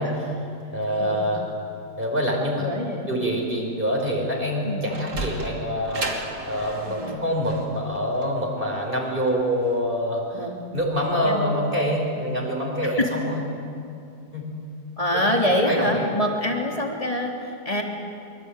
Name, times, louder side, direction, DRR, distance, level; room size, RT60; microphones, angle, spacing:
voice 1, 0.0-1.4 2.0-2.7 3.1-10.4 10.7-13.4 14.3-14.5 15.1-16.1, equal, 30° right, 0 dB, 5.6 m, -26 dB
voice 2, 2.6-3.1 4.6-4.9 6.9-7.2 10.3-10.5 11.2-11.6 13.0-13.1 15.0-17.8, left 1 dB, 20° left, 0 dB, 3.2 m, -25 dB
Sliding door, 4.7-9.8, right 2 dB, 70° right, 3.4 m, -34 dB
24.5 x 24.0 x 9.0 m, 2.6 s
omnidirectional pair, 1.8 m